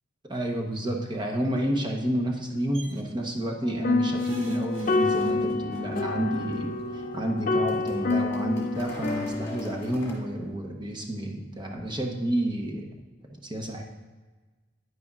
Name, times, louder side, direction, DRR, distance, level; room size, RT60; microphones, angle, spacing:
voice 1, 0.3-12.9 13.4-13.8, right 1 dB, 20° right, 1 dB, 0.9 m, -30 dB
sound 1, 2.7-3.0 4.1-5.8 7.0-7.1 7.4-7.5, right 3 dB, 85° right, 1.0 m, -47 dB
sound 2, 3.6-10.2, left 3 dB, 40° left, 0.4 m, -28 dB
sound 3, 4.9-10.2, left 1 dB, 15° left, 1.7 m, -47 dB
9.6 x 9.4 x 2.4 m, 1.3 s
head